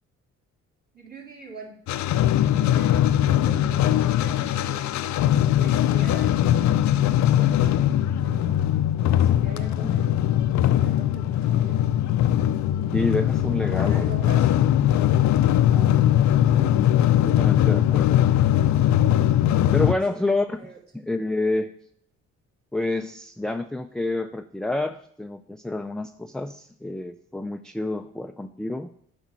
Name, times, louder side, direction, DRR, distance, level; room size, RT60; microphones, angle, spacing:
voice 1, 0.9-1.7 2.6-4.9 5.6-6.6 7.2-7.9 8.2-8.6 9.0-10.3 10.7-11.8 13.5-15.2 19.7-20.8, right 3 dB, 30° right, -2 dB, 3.3 m, -43 dB
sound 1, 1.9-19.9, left 11 dB, 70° left, 0.5 m, -20 dB
voice 2, 12.9-14.3 15.7-16.0 16.6-16.8 17.2-18.1 19.7-20.6 20.9-21.7 22.7-28.9, left 2 dB, ahead, 7 dB, 0.4 m, -28 dB
8.3 x 5.3 x 6.1 m, 0.67 s
cardioid pair, 90°, 30 cm